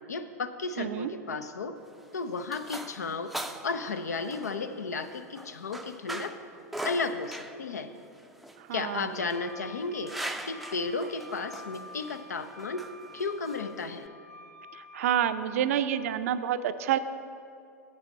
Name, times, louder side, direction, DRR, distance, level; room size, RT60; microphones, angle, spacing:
voice 1, 0.1-1.8 2.1-3.3 3.6-6.4 6.8-7.9 8.7-10.2 10.5-12.9 13.1-14.1, left 4 dB, 75° left, 10 dB, 0.6 m, -33 dB
voice 2, 0.8-1.1 8.6-9.1 14.7-17.0, right 10 dB, 60° right, 12 dB, 0.4 m, -28 dB
sound 1, 1.8-14.1, right 1 dB, ahead, 0.4 m, -42 dB
Wind instrument woodwind instrument, 9.2-15.9, left 1 dB, 90° right, 0.7 m, -49 dB
8.9 x 7.3 x 5.3 m, 2.4 s
figure-of-eight pair, 90°, 9 cm